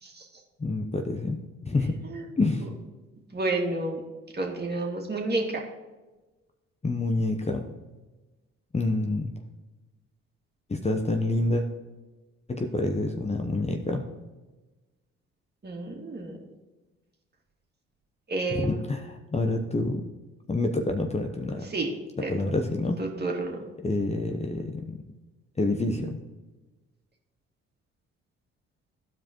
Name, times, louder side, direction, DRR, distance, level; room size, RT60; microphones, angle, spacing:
voice 1, 0.6-2.0 2.4-2.7 6.8-7.7 8.7-9.3 10.7-11.6 12.5-14.1 18.5-20.0 20.5-21.6 22.3-23.0 23.8-25.0 25.6-26.2, left 2 dB, 20° left, 4 dB, 0.8 m, -27 dB
voice 2, 3.3-4.0 4.3-5.6 15.6-16.4 18.3-18.8 21.7-21.9 22.2-22.3 23.0-23.7, right 2 dB, 30° right, 0 dB, 2.1 m, -30 dB
14.5 x 5.0 x 3.0 m, 1.2 s
hypercardioid pair, 50°, 32 cm